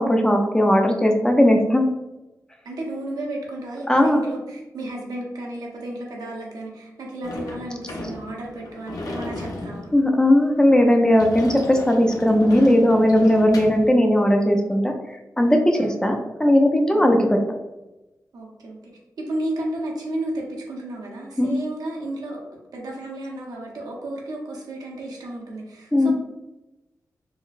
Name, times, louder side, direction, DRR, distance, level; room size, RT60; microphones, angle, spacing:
voice 1, 0.0-1.8 3.9-4.2 9.9-17.4 21.4-21.5 25.9-26.1, left 1 dB, 10° left, 3 dB, 0.4 m, -18 dB
voice 2, 2.6-9.9 15.7-16.0 16.9-17.2 18.3-18.9 19.2-22.4 22.7-26.1, right 1 dB, 85° right, -2 dB, 0.7 m, -33 dB
Sliding door / Slam, 7.2-13.9, left 1 dB, 70° left, 0.5 m, -36 dB
3.7 x 2.0 x 2.4 m, 1.0 s
wide cardioid pair, 100°, 6 cm